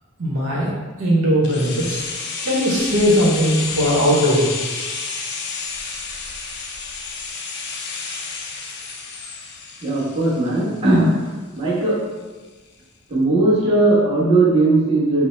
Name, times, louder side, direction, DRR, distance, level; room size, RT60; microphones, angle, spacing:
voice 1, 0.2-0.7 1.0-2.0 2.4-4.5, equal, 85° right, -5 dB, 0.9 m, -18 dB
sound 1, 1.4-11.3 11.6-11.7, left 4 dB, 55° left, 0.4 m, -30 dB
voice 2, 9.8-11.1 11.6-12.0 13.1-15.3, right 2 dB, 30° right, -9 dB, 1.1 m, -17 dB
4.4 x 2.0 x 3.2 m, 1.3 s
head